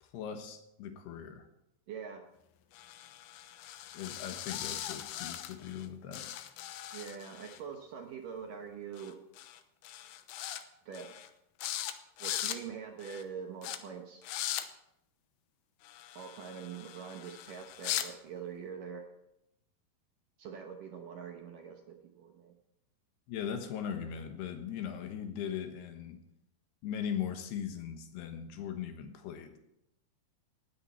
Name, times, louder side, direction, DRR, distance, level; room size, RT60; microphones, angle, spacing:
voice 1, 0.0-1.5 3.9-6.3 23.3-26.2 26.8-29.6, left 8 dB, 70° left, 6 dB, 3.1 m, -39 dB
voice 2, 1.9-2.2 6.9-9.2 10.9-11.1 12.2-14.3 16.2-19.0 20.4-22.5, right 7 dB, 65° right, 3 dB, 2.3 m, -44 dB
sound 1, 2.7-5.9 6.1-7.6 9.0-9.1 9.4-9.6 9.9-10.6 10.9-11.3 11.6-11.9 12.2-12.6 13.0-13.2 13.6-13.8 14.2-14.7 15.8-18.1, left 12 dB, 85° left, 3.2 m, -40 dB
19.5 x 12.5 x 4.5 m, 0.82 s
omnidirectional pair, 5.1 m